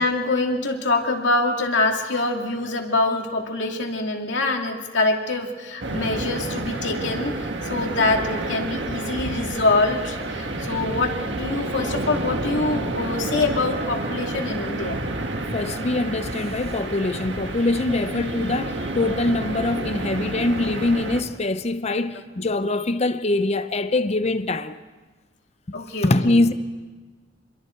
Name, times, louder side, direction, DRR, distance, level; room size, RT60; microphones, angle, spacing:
voice 1, 0.0-15.0 22.4-22.5 25.7-26.5, left 2 dB, 70° left, 2.6 m, -25 dB
sound 1, 5.8-21.2, right 2 dB, 65° right, 1.8 m, -29 dB
voice 2, 15.5-24.8 26.0-26.5, left 2 dB, 35° left, 0.7 m, -23 dB
28.0 x 22.5 x 4.6 m
head